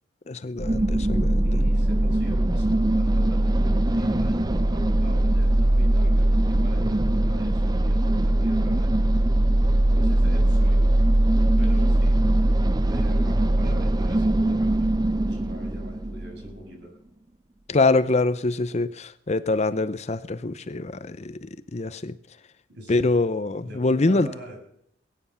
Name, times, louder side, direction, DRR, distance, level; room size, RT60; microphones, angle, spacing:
voice 1, 0.3-1.4 17.7-22.2 22.9-24.3, left 3 dB, 35° left, 0.6 m, -24 dB
sound 1, 0.6-16.5, right 1 dB, 20° right, 0.5 m, -21 dB
voice 2, 1.4-9.2 9.9-11.0 11.6-12.2 12.7-16.9 22.7-23.2 23.6-24.6, equal, 60° right, 7.1 m, -42 dB
21.5 x 9.6 x 5.7 m
head